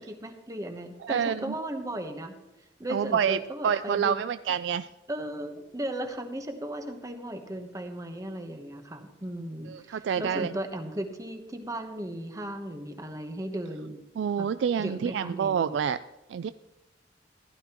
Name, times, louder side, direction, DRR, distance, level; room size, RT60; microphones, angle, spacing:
voice 1, 0.0-2.3 2.8-4.2 5.1-14.0 14.4-14.5 14.8-15.8, right 1 dB, 20° right, 6 dB, 1.0 m, -36 dB
voice 2, 1.0-1.5 2.9-3.4 3.6-4.9 9.7-10.6 14.2-16.0 16.3-16.5, right 7 dB, 85° right, 13 dB, 0.3 m, -27 dB
15.5 x 11.5 x 3.0 m, 0.98 s
head